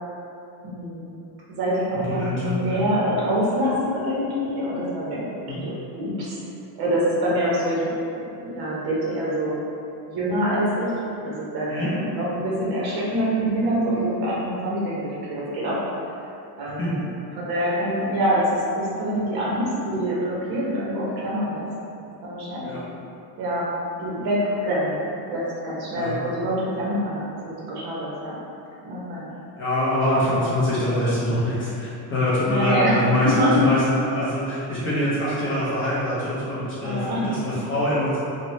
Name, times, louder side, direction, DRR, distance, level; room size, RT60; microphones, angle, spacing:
voice 1, 0.6-1.1 1.5-6.3 6.8-7.9 8.2-9.6 10.1-10.9 11.2-15.8 16.6-17.0 17.4-21.6 22.2-22.7 23.4-23.7 24.0-24.9 25.3-28.3 28.8-29.3 32.5-33.7 36.8-37.4, equal, 55° right, -7 dB, 0.9 m, -25 dB
voice 2, 1.9-2.8 5.5-5.6 11.7-11.9 16.8-16.9 22.6-22.8 25.9-26.2 29.6-38.2, left 1 dB, 30° left, -10 dB, 0.5 m, -24 dB
3.0 x 2.1 x 2.6 m, 2.7 s
cardioid pair, 150°, 46 cm